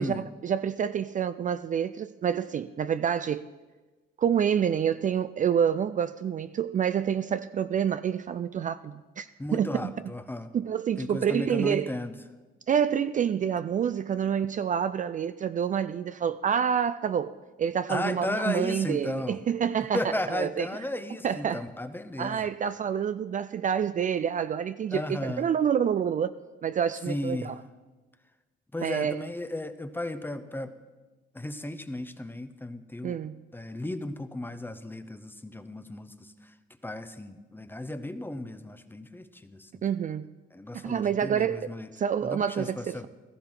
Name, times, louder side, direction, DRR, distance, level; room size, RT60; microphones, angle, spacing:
voice 1, 0.0-3.4 4.2-9.9 10.5-11.9 12.7-17.3 17.6-20.0 20.3-20.7 21.2-21.6 22.2-26.3 26.6-27.6 28.8-29.2 33.0-33.4 39.8-40.3 40.7-43.1, right 8 dB, 40° right, 0.4 m, -28 dB
voice 2, 9.4-10.5 11.0-12.2 17.9-19.4 19.9-22.5 24.9-25.5 27.1-27.5 28.7-30.7 31.3-33.2 33.5-36.5 36.8-39.8 40.5-41.9 42.2-43.1, left 1 dB, 10° left, 0.8 m, -35 dB
16.0 x 14.0 x 3.9 m
cardioid pair, 90°, 20 cm